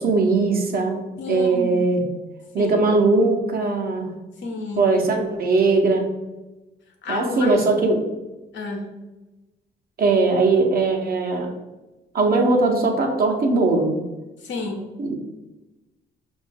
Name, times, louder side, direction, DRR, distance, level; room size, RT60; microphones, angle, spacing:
voice 1, 0.0-2.0 2.5-4.1 4.8-6.1 7.1-8.1 10.0-11.5 12.1-13.9 15.0-15.2, right 3 dB, 50° right, 2 dB, 0.9 m, -20 dB
voice 2, 1.2-1.9 2.6-2.8 4.4-4.9 7.0-7.7 8.5-8.9 14.4-14.9, left 3 dB, 70° left, 1 dB, 1.0 m, -31 dB
5.2 x 2.7 x 3.4 m, 1.1 s
cardioid pair, 90°, 20 cm